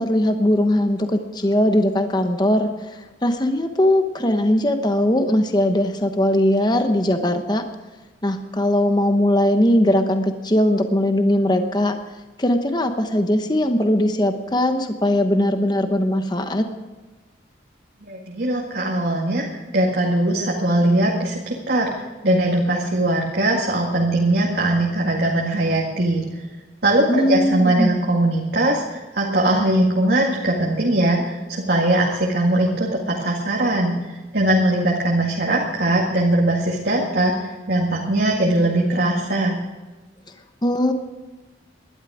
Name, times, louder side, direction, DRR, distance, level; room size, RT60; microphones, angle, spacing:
voice 1, 0.0-7.6 8.2-12.0 12.4-16.6 27.1-27.9 40.6-40.9, left 1 dB, 25° left, 7 dB, 1.0 m, -20 dB
voice 2, 18.0-19.5 19.7-21.9 22.2-26.2 26.8-33.9 34.3-39.6, right 1 dB, 60° right, -2 dB, 2.0 m, -20 dB
19.0 x 12.0 x 5.0 m, 1.2 s
head